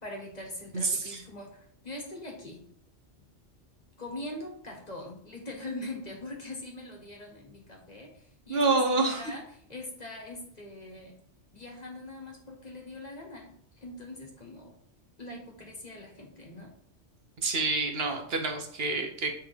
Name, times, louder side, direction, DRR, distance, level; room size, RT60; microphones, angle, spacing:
voice 1, 0.0-2.6 4.0-9.4 9.7-11.1 11.5-14.7 15.2-16.7, left 1 dB, 40° left, 0 dB, 1.3 m, -42 dB
voice 2, 0.7-1.2 8.5-9.2 17.4-19.3, right 3 dB, 65° right, 4 dB, 1.0 m, -27 dB
8.7 x 3.4 x 3.3 m, 0.64 s
omnidirectional pair, 1.2 m